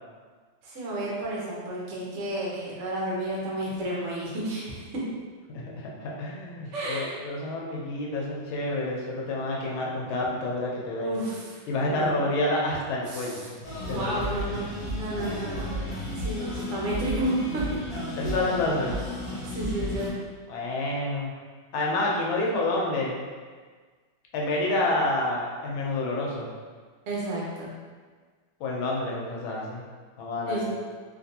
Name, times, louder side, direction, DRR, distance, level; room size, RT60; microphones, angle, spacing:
voice 1, 0.6-4.8 6.7-7.1 11.0-12.1 13.1-13.4 13.8-14.7 14.9-15.7 16.1-17.6 19.4-20.1 27.1-27.7 30.5-30.6, right 1 dB, 55° right, -5 dB, 0.9 m, -31 dB
voice 2, 5.5-11.2 11.7-13.5 13.9-14.5 18.2-18.9 20.5-21.3 21.7-23.2 24.3-26.5 28.6-29.8 30.2-30.6, left 2 dB, 85° left, -3 dB, 1.4 m, -28 dB
sound 1, 13.6-20.1, equal, 25° left, 1.1 m, -33 dB
3.2 x 2.9 x 2.7 m, 1.5 s
omnidirectional pair, 2.2 m